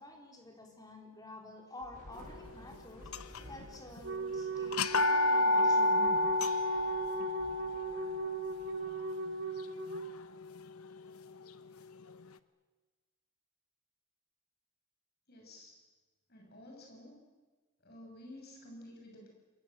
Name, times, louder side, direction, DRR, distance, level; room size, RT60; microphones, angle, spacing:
voice 1, 0.0-6.1, left 1 dB, 15° left, 1 dB, 4.2 m, -50 dB
Thunder / Rain, 1.8-9.3, equal, 35° right, 7.9 m, -56 dB
sound 1, 3.1-3.6 4.0-4.1 4.7-10.6, left 2 dB, 80° left, 1.0 m, -31 dB
Wind instrument woodwind instrument, 4.0-10.1, right 3 dB, 55° right, 1.5 m, -39 dB
voice 2, 15.3-15.8 16.3-17.2 17.8-19.3, left 1 dB, 45° left, 1 dB, 7.0 m, -52 dB
27.5 x 22.0 x 7.8 m, 1.3 s
head